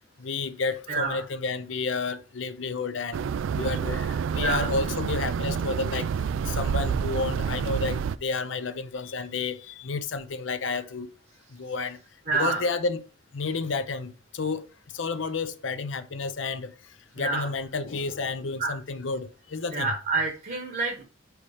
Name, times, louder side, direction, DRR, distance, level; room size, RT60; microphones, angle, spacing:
voice 1, 0.2-3.3 3.5-6.1 6.5-11.1 11.5-12.0 12.4-13.0 13.3-14.7 14.9-19.9, left 4 dB, 75° left, 0.6 m, -31 dB
voice 2, 0.9-1.2 4.4-4.7 12.3-12.6 17.2-17.5 18.6-18.7 19.7-21.0, right 3 dB, 50° right, 1.0 m, -28 dB
sound 1, 3.1-8.2, right 7 dB, 85° right, 0.3 m, -28 dB
5.5 x 4.6 x 4.8 m
head